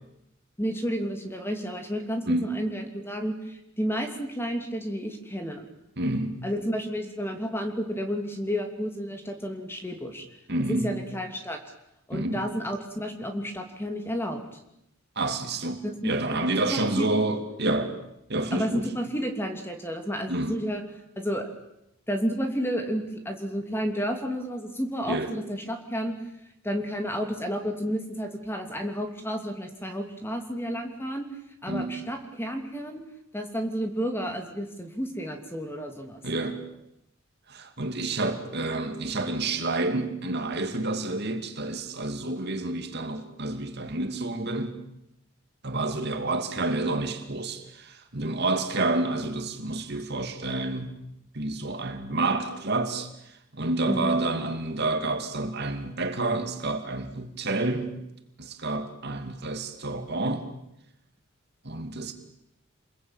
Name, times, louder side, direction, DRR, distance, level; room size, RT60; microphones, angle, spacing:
voice 1, 0.6-5.6 6.4-10.2 10.7-11.6 12.1-14.6 15.8-16.1 16.7-17.1 18.5-20.8 21.2-21.5 22.1-26.1 26.6-31.3 31.6-33.0 33.3-36.2 53.9-54.2, equal, 10° left, 2.9 m, -31 dB
voice 2, 2.3-2.6 6.0-6.4 10.5-11.0 12.1-12.5 15.2-17.9 18.3-18.9 20.3-20.6 25.1-25.3 31.7-32.0 36.2-36.6 37.5-44.8 45.6-50.9 51.3-53.1 53.5-57.9 58.4-60.5 61.6-62.1, right 2 dB, 50° right, 2.7 m, -29 dB
28.5 x 21.5 x 9.1 m
head